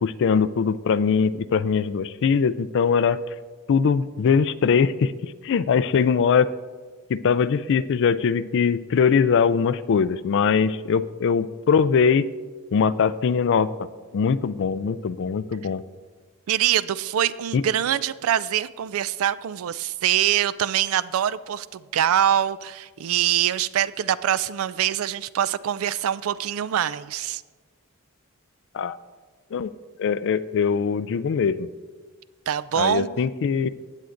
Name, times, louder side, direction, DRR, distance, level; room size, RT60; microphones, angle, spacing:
voice 1, 0.0-3.2 3.7-6.5 7.1-12.3 12.7-13.7 14.1-15.8 17.5-17.6 28.7-29.0 29.5-29.7 30.0-31.7 32.7-33.7, left 6 dB, 60° left, 14 dB, 0.3 m, -21 dB
voice 2, 16.5-27.4 32.5-33.1, right 10 dB, 70° right, 17 dB, 0.3 m, -24 dB
15.5 x 8.2 x 2.6 m, 1.4 s
head